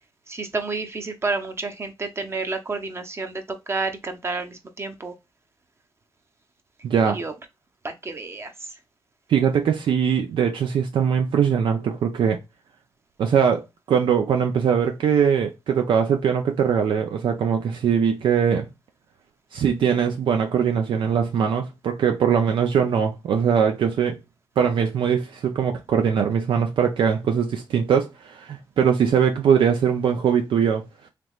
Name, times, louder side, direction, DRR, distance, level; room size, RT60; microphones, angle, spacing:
voice 1, 0.3-5.1 7.1-7.3 7.8-8.5, right 3 dB, 30° right, 0.8 m, -30 dB
voice 2, 6.8-7.2 9.3-12.4 13.2-13.6 13.9-18.7 19.5-24.2 24.6-30.8, right 7 dB, 70° right, 0.5 m, -21 dB
3.4 x 3.0 x 2.4 m
cardioid pair, 85°, 9 cm